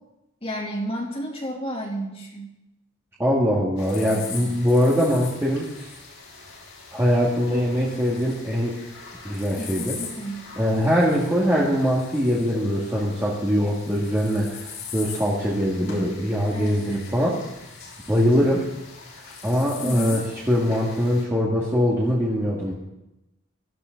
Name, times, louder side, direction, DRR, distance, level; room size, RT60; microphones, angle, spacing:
voice 1, 0.4-2.5 9.6-10.5 16.5-17.1 19.8-20.2, right 1 dB, 30° left, -1 dB, 2.8 m, -31 dB
voice 2, 3.2-5.9 6.9-8.8 9.2-10.0 10.6-17.4 18.1-18.6 19.4-22.7, equal, 10° right, -6 dB, 2.1 m, -22 dB
sound 1, 3.8-21.2, left 5 dB, 75° left, 5.6 m, -41 dB
17.0 x 13.5 x 3.9 m, 0.92 s
head